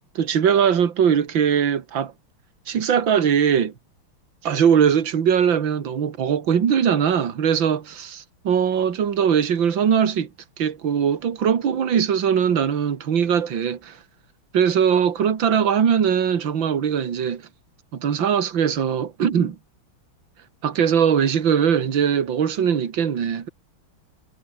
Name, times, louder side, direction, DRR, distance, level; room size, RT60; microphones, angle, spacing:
voice 1, 0.2-2.1 2.7-3.7 4.4-10.3 10.6-14.0 14.5-17.4 17.9-19.6 20.6-23.5, right 8 dB, 65° right, 2.6 m, -20 dB
omnidirectional pair, 2.3 m